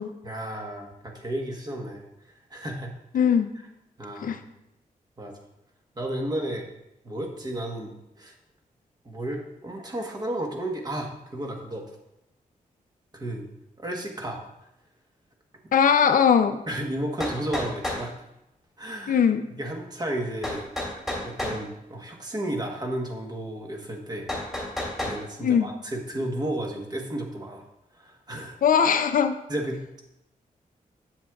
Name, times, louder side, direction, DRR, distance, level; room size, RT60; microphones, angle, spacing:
voice 1, 0.2-2.0 2.5-2.9 4.0-4.4 5.2-5.4 6.0-6.7 7.0-8.3 9.0-11.9 13.1-13.4 13.8-14.4 16.7-18.1 18.8-19.2 19.6-20.7 21.2-24.3 25.0-27.7 27.9-28.6 29.5-30.0, right 1 dB, 30° right, 1 dB, 1.2 m, -33 dB
voice 2, 3.1-3.5 4.2-4.4 15.7-16.6 19.1-19.5 25.4-25.7 28.6-29.4, left 7 dB, 70° left, 9 dB, 0.5 m, -20 dB
sound 1, 17.2-18.1 20.4-21.6 24.3-25.2, left 1 dB, ahead, 2.3 m, -30 dB
7.5 x 7.4 x 2.3 m, 0.85 s
wide cardioid pair, 125°, 14 cm